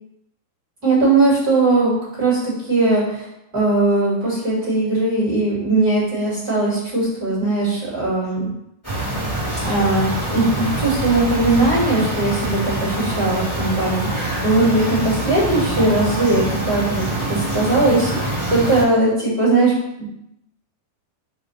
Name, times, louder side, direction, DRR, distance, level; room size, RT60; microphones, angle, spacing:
voice 1, 0.8-3.3 3.5-8.5 9.6-19.7, right 2 dB, 30° right, -9 dB, 2.0 m, -19 dB
sound 1, 8.8-18.8, right 1 dB, 15° left, 0.5 m, -25 dB
5.9 x 3.0 x 5.5 m, 0.82 s
omnidirectional pair, 4.6 m